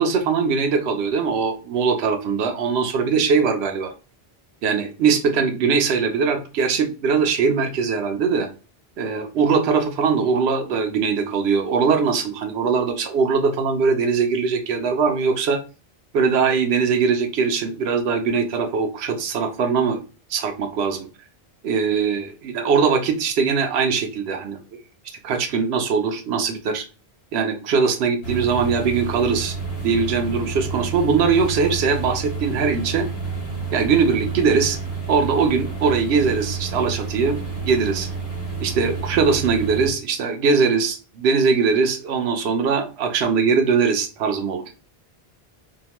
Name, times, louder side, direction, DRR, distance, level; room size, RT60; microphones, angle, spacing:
voice 1, 0.0-3.9 4.6-8.5 9.0-15.6 16.1-20.0 20.3-21.1 21.6-24.6 25.2-26.8 27.3-29.5 29.8-33.1 33.7-34.8 35.1-37.4 37.6-38.1 38.6-44.6, right 5 dB, 90° right, 6 dB, 0.8 m, -21 dB
sound 1, 28.2-39.9, right 4 dB, 70° left, 1.1 m, -30 dB
2.8 x 2.1 x 2.9 m, 0.34 s
omnidirectional pair, 1.0 m